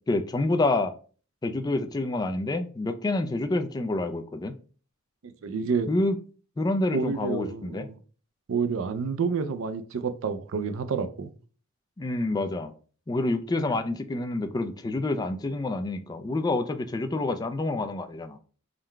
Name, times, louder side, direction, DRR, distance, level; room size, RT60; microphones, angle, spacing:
voice 1, 0.1-0.9 1.4-4.5 5.9-6.2 6.6-7.9 12.0-12.7 13.1-18.4, left 2 dB, 20° left, 0.3 m, -28 dB
voice 2, 5.2-5.9 6.9-8.0 8.5-11.3, right 5 dB, 80° right, 0.4 m, -29 dB
3.8 x 2.1 x 4.5 m
head